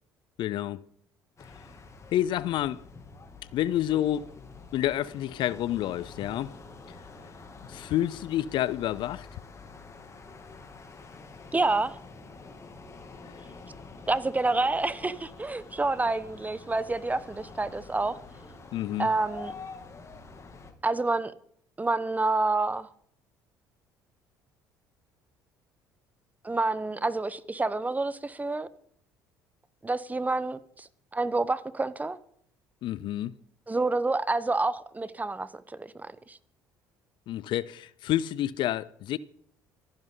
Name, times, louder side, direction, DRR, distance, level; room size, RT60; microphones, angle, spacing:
voice 1, 0.4-0.8 2.1-2.8 3.5-4.3 4.7-6.5 7.7-9.3 18.7-19.1 32.8-33.3 37.3-39.2, left 12 dB, 60° left, 0.6 m, -29 dB
sound 1, 1.4-20.7, left 4 dB, 30° left, 2.5 m, -47 dB
voice 2, 11.5-12.0 14.1-18.2 19.0-19.5 20.8-21.3 21.8-22.9 26.4-28.7 29.8-30.9 31.1-32.2 33.7-36.4, right 3 dB, 15° right, 1.0 m, -28 dB
25.5 x 10.5 x 3.9 m
hypercardioid pair, 65°, 9 cm